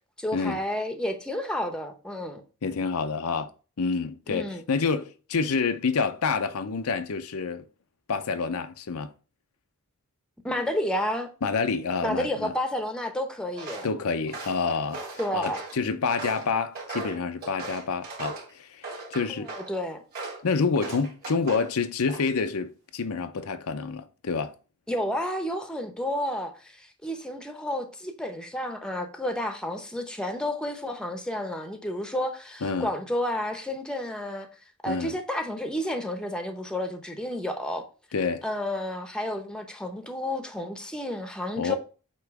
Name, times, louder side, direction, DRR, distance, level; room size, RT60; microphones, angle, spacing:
voice 1, 0.2-2.4 4.3-4.6 10.4-11.3 12.0-13.9 15.2-15.6 19.3-20.0 24.9-34.5 34.8-37.8 38.4-41.7, left 1 dB, 5° left, 0.8 m, -31 dB
voice 2, 2.6-3.5 3.8-7.7 8.1-9.1 11.4-12.5 13.8-15.0 15.3-19.5 20.4-24.5 32.6-32.9 34.9-35.1 38.1-38.4 41.6-41.7, left 5 dB, 70° left, 0.6 m, -28 dB
Walk footsteps, 13.5-13.9 14.3-15.8 16.2-18.5 18.8-19.7 20.1-20.4 20.8-21.7 22.0-22.5, right 3 dB, 40° right, 2.7 m, -38 dB
8.1 x 3.0 x 4.7 m
head